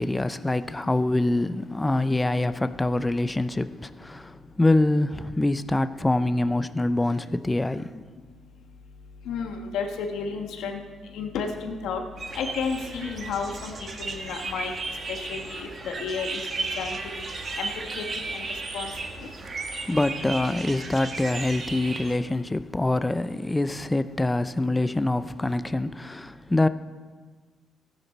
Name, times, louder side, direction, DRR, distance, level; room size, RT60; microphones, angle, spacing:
voice 1, 0.0-8.0 19.5-26.7, left 2 dB, 15° left, 0.4 m, -25 dB
voice 2, 9.3-10.8 11.1-12.0 12.3-14.7 15.1-16.4 16.8-17.0 17.6-17.7 17.9-18.0 18.3-18.4 18.7-18.9 19.2-19.3, left 5 dB, 85° left, 1.3 m, -32 dB
sound 1, 12.2-22.2, right 3 dB, 45° right, 1.6 m, -35 dB
15.0 x 10.5 x 4.1 m
cardioid pair, 90°, 0 cm